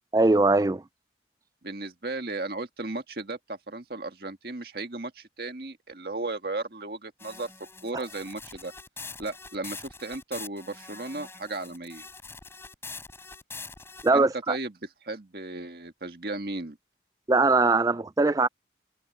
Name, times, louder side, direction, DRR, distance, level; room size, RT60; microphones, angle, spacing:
voice 1, 0.1-0.8 7.9-8.0 14.0-14.6 17.3-18.5, right 3 dB, 20° right, 0.4 m, -21 dB
voice 2, 1.6-7.5 7.8-8.7 9.2-12.1 14.1-14.7 15.0-16.8, right 2 dB, 60° right, 1.8 m, -35 dB
sound 1, 7.2-14.1, left 4 dB, 15° left, 7.2 m, -44 dB
open air
head